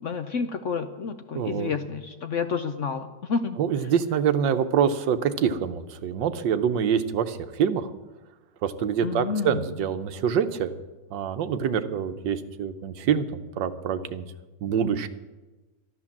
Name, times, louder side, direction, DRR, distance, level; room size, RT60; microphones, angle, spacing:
voice 1, 0.0-3.6 9.0-9.7, left 5 dB, 60° left, 8 dB, 0.8 m, -30 dB
voice 2, 1.3-1.7 3.6-7.9 8.6-10.7 11.1-14.2 14.6-15.1, right 8 dB, 85° right, 10 dB, 1.6 m, -25 dB
12.5 x 12.5 x 7.2 m, 1.2 s
omnidirectional pair, 1.9 m